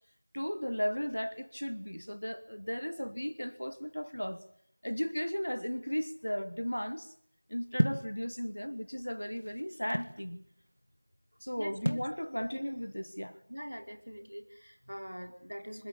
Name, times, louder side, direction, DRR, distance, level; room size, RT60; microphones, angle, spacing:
voice 1, 0.3-4.4 4.8-7.1 7.5-10.5 11.4-13.4, equal, 40° left, 1.2 m, -35 dB
sound 1, 7.8-8.1 9.0-10.2 11.8-12.1, equal, 65° left, 1.9 m, -30 dB
voice 2, 13.5-15.9, equal, 55° right, 4.2 m, -43 dB
26.0 x 16.5 x 8.9 m
figure-of-eight pair, 180°, 0 cm